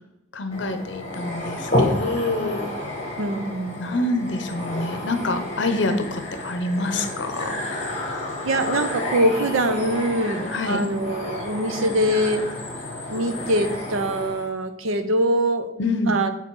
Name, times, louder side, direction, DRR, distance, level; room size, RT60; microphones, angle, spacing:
voice 1, 0.3-2.6 3.8-7.9 10.5-10.8 15.8-16.2, left 2 dB, 60° left, 8 dB, 0.8 m, -26 dB
sound 1, 0.5-14.5, left 1 dB, 30° left, 1.5 m, -30 dB
voice 2, 3.2-3.9 8.4-12.4 13.1-15.7 16.1-16.3, right 1 dB, 85° right, 9 dB, 0.7 m, -23 dB
8.4 x 3.9 x 4.7 m, 0.94 s
head